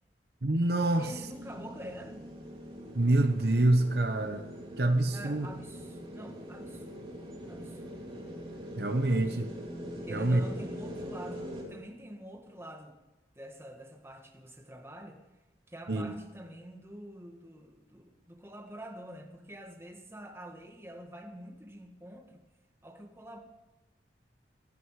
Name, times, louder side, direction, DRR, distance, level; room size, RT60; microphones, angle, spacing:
voice 1, 0.4-1.1 2.9-4.5 4.8-5.5 8.8-9.5 10.1-10.4 15.9-16.2, right 2 dB, 60° right, 7 dB, 0.9 m, -26 dB
sound 1, 0.9-11.6, equal, 30° right, 3.1 m, -43 dB
voice 2, 1.0-2.3 5.1-7.1 7.5-8.0 9.1-9.4 10.0-13.0 13.3-15.2 15.7-22.4 22.8-23.4, right 1 dB, 15° right, 2 dB, 1.6 m, -47 dB
16.5 x 11.5 x 4.8 m, 1.1 s
head